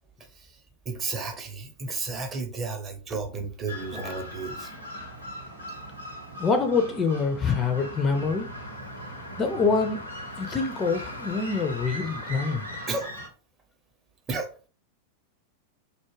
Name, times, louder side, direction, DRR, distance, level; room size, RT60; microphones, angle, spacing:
voice 1, 0.9-4.7 12.9-13.1 14.3-14.5, right 4 dB, 25° right, 0.6 m, -32 dB
sound 1, 3.7-13.3, equal, 80° right, 0.7 m, -41 dB
voice 2, 6.4-8.5 9.4-10.0 10.4-12.6, left 4 dB, 20° left, 0.4 m, -25 dB
sound 2, 7.4-12.9, left 1 dB, 80° left, 0.4 m, -40 dB
2.3 x 2.1 x 3.1 m
figure-of-eight pair, 90°, 0 cm